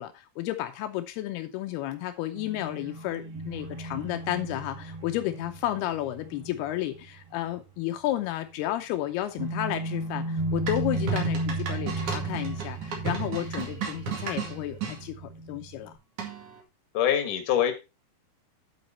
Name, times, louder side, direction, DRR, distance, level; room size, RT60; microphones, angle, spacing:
voice 1, 0.0-15.9, left 14 dB, 85° left, 8 dB, 2.8 m, -32 dB
sound 1, 2.4-7.8 8.1-8.2 9.4-16.0, right 2 dB, 85° right, 5.0 m, -35 dB
sound 2, 10.7-15.0 16.2-16.6, right 6 dB, 55° right, 3.4 m, -34 dB
voice 2, 16.9-17.7, left 10 dB, 60° left, 7 dB, 2.9 m, -24 dB
8.9 x 8.0 x 4.1 m, 0.27 s
omnidirectional pair, 4.5 m